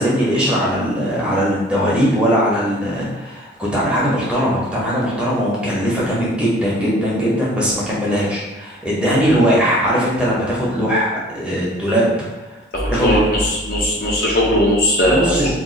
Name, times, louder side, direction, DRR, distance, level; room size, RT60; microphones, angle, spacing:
voice 1, 0.0-12.5 12.9-13.2 15.0-15.5, equal, 5° right, -7 dB, 0.6 m, -19 dB
voice 2, 12.7-15.5, equal, 50° left, -3 dB, 0.6 m, -18 dB
2.4 x 2.3 x 3.7 m, 1.1 s
head